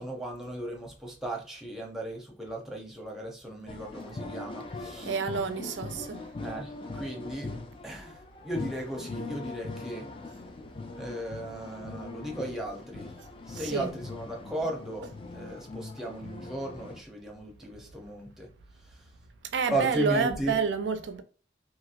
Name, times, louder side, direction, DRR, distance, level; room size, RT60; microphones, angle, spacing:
voice 1, 0.0-5.1 6.4-7.5 7.8-10.1 10.9-13.1 13.5-18.5 18.9-19.0 19.7-20.6, right 1 dB, ahead, 0.6 m, -36 dB
sound 1, 3.7-17.0, left 3 dB, 30° left, 0.3 m, -41 dB
voice 2, 5.0-6.2 13.6-13.9 19.5-21.2, right 5 dB, 85° right, 0.4 m, -29 dB
2.9 x 2.7 x 2.5 m
head